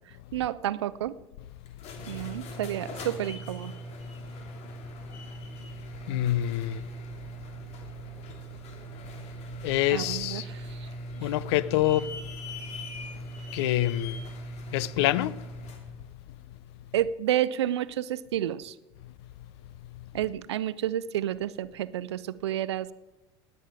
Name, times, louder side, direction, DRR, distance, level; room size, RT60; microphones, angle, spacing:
voice 1, 0.3-1.1 2.1-3.7 9.9-10.9 16.9-18.7 20.1-22.9, right 12 dB, 85° right, 0.6 m, -30 dB
sound 1, 1.7-15.9, right 2 dB, 50° left, 3.0 m, -41 dB
voice 2, 6.1-6.8 9.6-10.5 11.2-12.1 13.5-14.2 14.7-15.4, left 14 dB, 70° left, 0.7 m, -26 dB
17.5 x 9.9 x 5.0 m
hypercardioid pair, 80°, 14 cm